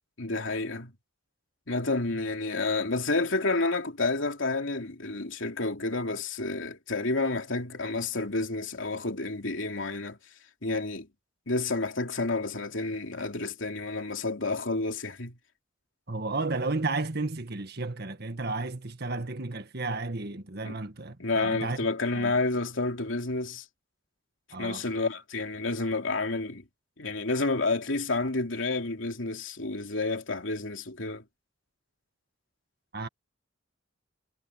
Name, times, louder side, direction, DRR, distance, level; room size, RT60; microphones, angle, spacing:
voice 1, 0.2-0.9 1.7-10.2 10.6-11.1 11.5-15.4 20.6-20.8 21.2-23.6 24.6-26.6 27.0-31.2, left 3 dB, 85° left, 2.9 m, -30 dB
voice 2, 16.1-21.8 22.1-22.3 24.5-24.8 32.9-33.1, right 3 dB, 55° right, 1.8 m, -33 dB
head